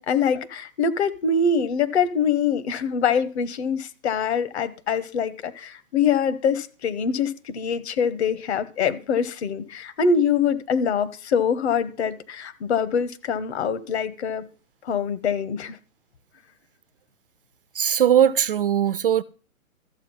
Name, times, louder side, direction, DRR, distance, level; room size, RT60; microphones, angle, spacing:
voice 1, 0.0-14.5 14.8-15.8, left 6 dB, 50° left, 1.2 m, -24 dB
voice 2, 17.7-19.2, right 9 dB, 40° right, 0.5 m, -19 dB
13.5 x 7.7 x 5.6 m
figure-of-eight pair, 130°, 42 cm